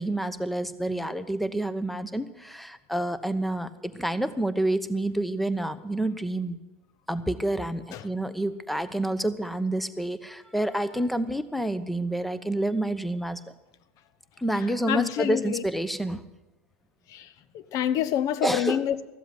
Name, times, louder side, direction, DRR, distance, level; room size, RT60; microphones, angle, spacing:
voice 1, 0.0-6.6 7.1-13.4 14.4-16.2 18.4-18.8, right 1 dB, ahead, 0.9 m, -28 dB
voice 2, 14.9-15.6 17.1-19.1, left 10 dB, 55° left, 0.9 m, -27 dB
14.0 x 7.7 x 9.4 m
hypercardioid pair, 95°, 7 cm